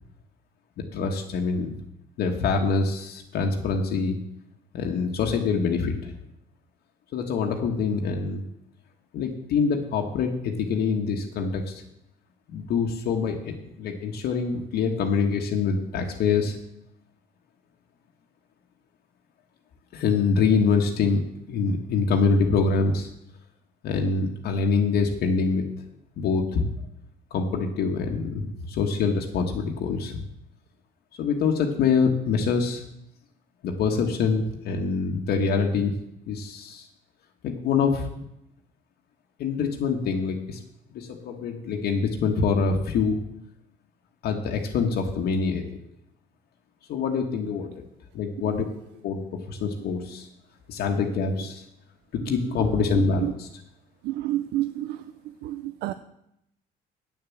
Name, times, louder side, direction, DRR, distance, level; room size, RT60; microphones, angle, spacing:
voice 1, 0.9-1.7 2.2-4.2 4.7-6.1 7.1-8.4 9.1-11.8 12.5-16.6 19.9-21.2 21.5-23.1 23.8-25.6 26.2-26.7 27.3-30.2 31.2-32.8 33.6-35.9 36.3-36.8 37.4-38.1 39.4-40.6 40.9-43.2 44.2-45.6 46.9-47.7 48.1-48.7 49.0-49.2 49.5-50.3 50.7-51.6 52.1-53.5, left 5 dB, 70° left, 2 dB, 1.3 m, -25 dB
voice 2, 54.0-55.0 55.4-55.9, right 15 dB, 80° right, 12 dB, 0.5 m, -28 dB
8.6 x 7.1 x 7.0 m, 0.80 s
cardioid pair, 110°, 17 cm